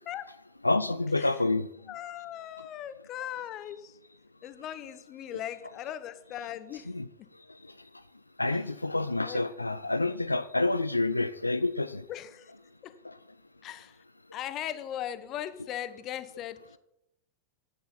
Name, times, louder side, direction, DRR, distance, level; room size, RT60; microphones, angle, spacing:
voice 1, 0.6-1.7 6.9-7.1 8.4-12.0 13.0-13.1, left 2 dB, 85° left, 0.4 m, -28 dB
voice 2, 1.9-4.0 4.4-6.9 8.5-8.6 9.2-9.5 12.1-12.5 12.8-12.9 13.6-14.0 14.3-16.8, left 11 dB, 35° left, 1.0 m, -39 dB
13.0 x 9.3 x 5.7 m
figure-of-eight pair, 90°, 0 cm